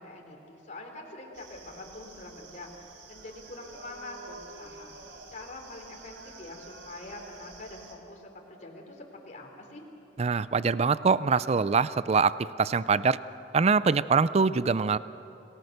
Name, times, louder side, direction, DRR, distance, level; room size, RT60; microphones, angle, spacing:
voice 1, 0.0-2.7 3.1-4.9 5.3-9.9, left 2 dB, 45° left, 1 dB, 3.6 m, -44 dB
sound 1, 1.3-8.0, right 3 dB, 90° right, 3.2 m, -49 dB
voice 2, 10.2-13.2 13.5-15.0, right 5 dB, 35° right, 16 dB, 0.4 m, -24 dB
27.5 x 19.0 x 6.7 m, 2.7 s
head